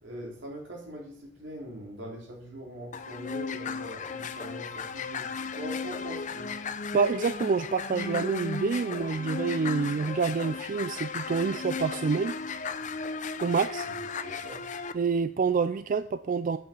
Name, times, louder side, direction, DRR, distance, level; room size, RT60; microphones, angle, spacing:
voice 1, 0.0-6.5 13.9-14.0 14.2-14.6, right 1 dB, 85° right, -2 dB, 3.7 m, -42 dB
sound 1, 2.9-14.9, left 5 dB, 40° left, 0.6 m, -35 dB
voice 2, 6.9-12.4 13.4-13.9 14.9-16.6, right 5 dB, 45° right, 12 dB, 0.4 m, -27 dB
8.6 x 7.0 x 7.3 m, 0.64 s
head